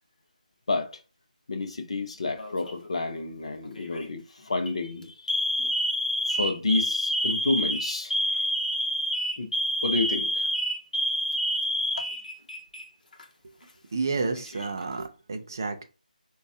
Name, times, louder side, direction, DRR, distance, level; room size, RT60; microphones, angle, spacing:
voice 1, 0.7-1.0 1.5-5.7 6.3-8.2 9.4-9.5 9.8-10.5 11.9-12.0, left 3 dB, 45° left, 0.5 m, -30 dB
Alarm, 2.4-2.9 3.8-4.1 4.5-4.7 5.3-12.8 13.1-13.2 14.2-14.9, equal, 70° left, 0.9 m, -28 dB
voice 2, 13.9-15.8, right 4 dB, 25° right, 0.3 m, -30 dB
4.1 x 2.3 x 2.7 m
figure-of-eight pair, 175°, 5 cm